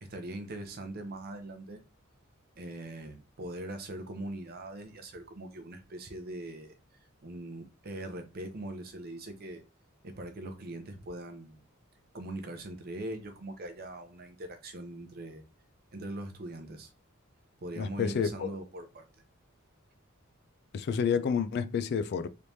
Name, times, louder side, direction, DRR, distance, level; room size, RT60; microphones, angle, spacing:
voice 1, 0.0-1.8 2.6-6.8 7.2-9.6 10.0-11.6 12.1-15.4 15.9-16.9 17.6-19.0, right 1 dB, 50° right, 0.7 m, -41 dB
voice 2, 17.8-18.5 20.7-22.3, left 6 dB, 50° left, 0.3 m, -29 dB
3.4 x 3.1 x 2.7 m
head